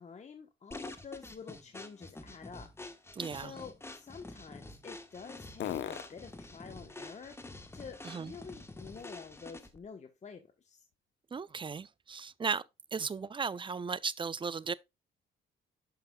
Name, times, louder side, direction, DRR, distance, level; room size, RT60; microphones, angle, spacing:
voice 1, 0.0-2.7 3.0-10.8, left 5 dB, 35° left, 1.0 m, -49 dB
sound 1, 0.7-9.9, left 2 dB, 10° left, 1.1 m, -48 dB
voice 2, 3.1-3.5 8.0-8.3 11.3-12.6 12.9-14.7, right 5 dB, 25° right, 0.4 m, -36 dB
sound 2, 10.2-13.9, left 11 dB, 70° left, 0.8 m, -49 dB
11.5 x 5.5 x 2.2 m
cardioid pair, 90°, 20 cm